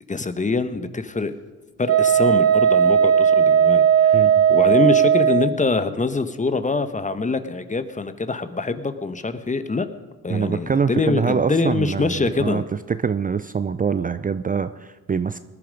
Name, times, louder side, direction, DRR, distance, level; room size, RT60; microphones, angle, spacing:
voice 1, 0.1-1.3 1.8-9.9 10.2-12.6, left 3 dB, 25° left, 11 dB, 1.2 m, -24 dB
Wind instrument woodwind instrument, 1.9-5.5, right 8 dB, 50° right, 0.9 m, -16 dB
voice 2, 4.1-4.5 10.3-12.6 12.9-15.4, right 6 dB, 25° right, 12 dB, 0.5 m, -24 dB
19.5 x 10.5 x 5.2 m, 1.2 s
supercardioid pair, 65°, 32 cm